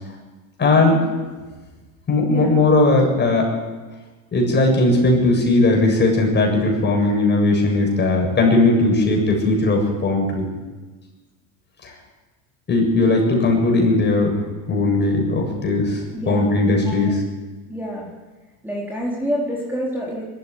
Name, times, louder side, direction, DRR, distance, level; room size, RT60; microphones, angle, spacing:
voice 1, 0.6-1.0 2.1-3.5 4.3-10.5 11.8-11.9 12.7-14.4 14.7-17.2, left 2 dB, 20° left, 1 dB, 7.7 m, -18 dB
voice 2, 2.3-2.6 16.1-16.6 16.9-17.2 17.7-18.1 18.6-20.3, equal, 5° right, -4 dB, 4.2 m, -27 dB
22.0 x 14.5 x 9.7 m, 1.3 s
supercardioid pair, 130°, 47 cm